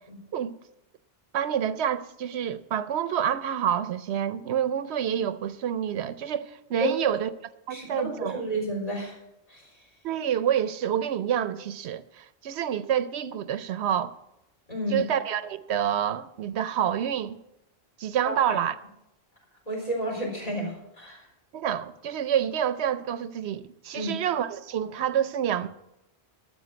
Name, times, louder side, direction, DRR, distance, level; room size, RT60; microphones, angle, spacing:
voice 1, 1.3-7.3 7.7-8.4 10.0-14.1 14.9-17.4 18.0-18.7 21.5-25.7, right 9 dB, 85° right, 0.9 m, -28 dB
voice 2, 6.8-7.2 7.7-9.2 9.5-9.9 14.7-15.1 18.2-18.5 19.7-21.3 23.9-24.1, right 1 dB, 35° left, 4.2 m, -31 dB
12.5 x 6.9 x 8.0 m
omnidirectional pair, 1.1 m